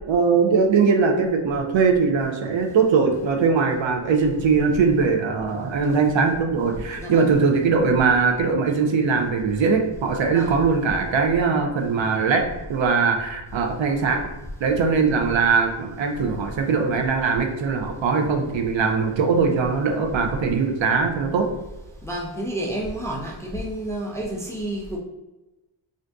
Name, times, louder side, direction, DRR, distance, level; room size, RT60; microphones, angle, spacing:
voice 1, 0.1-12.4 12.7-14.2 14.6-21.5, right 5 dB, 65° right, 4 dB, 0.6 m, -21 dB
voice 2, 7.0-7.3 10.3-10.6 22.0-25.0, right 1 dB, 5° left, -3 dB, 0.4 m, -30 dB
2.5 x 2.5 x 3.4 m, 1.0 s
wide cardioid pair, 120°, 50 cm